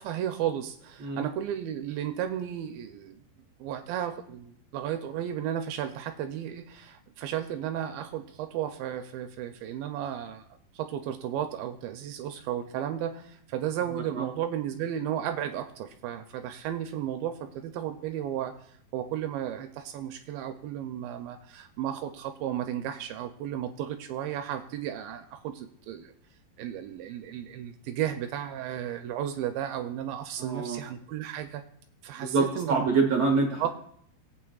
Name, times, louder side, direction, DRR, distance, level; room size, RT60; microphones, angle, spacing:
voice 1, 0.0-3.2 3.6-10.5 10.7-26.1 26.6-31.7 32.0-32.9 33.6-33.7, right 10 dB, 80° right, 7 dB, 2.2 m, -34 dB
voice 2, 30.4-30.8 32.2-33.7, right 4 dB, 60° right, 2 dB, 1.8 m, -26 dB
20.0 x 8.5 x 2.3 m, 0.65 s
omnidirectional pair, 4.4 m